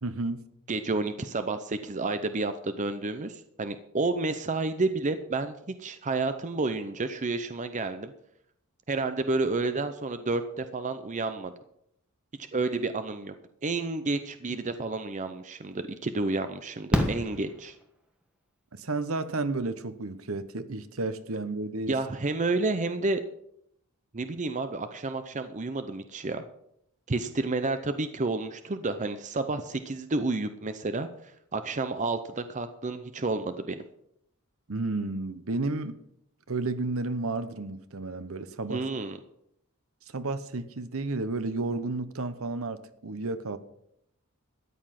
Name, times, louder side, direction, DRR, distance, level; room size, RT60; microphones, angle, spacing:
voice 1, 0.0-0.4 18.7-22.0 34.7-36.0 36.5-38.8 40.1-43.6, right 3 dB, 65° right, 1.0 m, -32 dB
voice 2, 0.7-8.1 8.9-11.5 12.5-13.3 13.6-17.7 21.9-23.2 24.1-26.4 27.1-31.1 31.5-33.8 38.7-39.2, right 3 dB, 35° right, 0.6 m, -30 dB
Fireworks, 15.2-15.3 16.9-18.2 20.0-20.1 20.3-20.4, equal, 5° right, 1.5 m, -29 dB
13.5 x 9.8 x 5.8 m
head